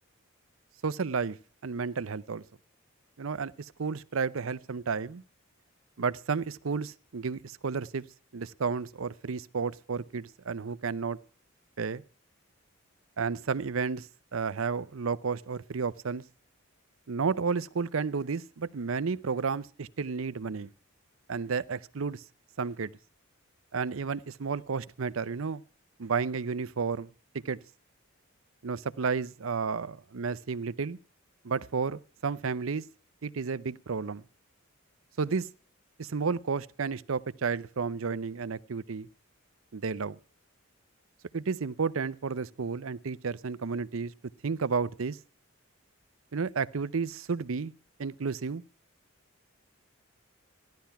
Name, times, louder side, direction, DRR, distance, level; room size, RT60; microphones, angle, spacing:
voice 1, 0.8-1.4 1.6-2.4 3.2-5.2 6.0-8.0 8.3-11.2 11.8-12.0 13.2-16.2 17.1-20.7 21.3-22.2 22.6-22.9 23.7-25.6 26.0-27.1 27.4-27.6 28.6-31.0 31.4-32.8 33.2-34.2 35.2-35.5 36.0-39.1 39.7-40.2 41.3-44.1 44.4-45.2 46.3-47.7 48.0-48.6, right 5 dB, 75° right, 0.6 m, -32 dB
15.0 x 11.5 x 5.8 m
head